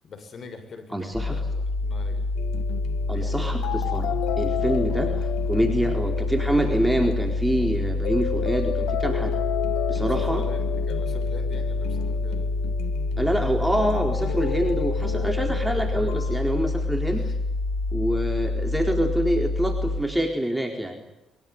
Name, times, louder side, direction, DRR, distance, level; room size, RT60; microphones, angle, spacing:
voice 1, 0.0-2.3 3.1-3.6 10.1-12.5 17.0-17.4, left 4 dB, 55° left, 8 dB, 7.2 m, -42 dB
voice 2, 0.9-1.4 3.1-9.3 9.9-10.4 13.2-17.2 17.9-21.0, equal, 5° right, 4 dB, 4.3 m, -26 dB
sound 1, 1.1-20.0, left 2 dB, 40° left, 7.8 m, -27 dB
sound 2, 2.4-16.4, left 12 dB, 80° left, 1.7 m, -33 dB
23.5 x 23.5 x 9.7 m, 0.93 s
hypercardioid pair, 55°, 0 cm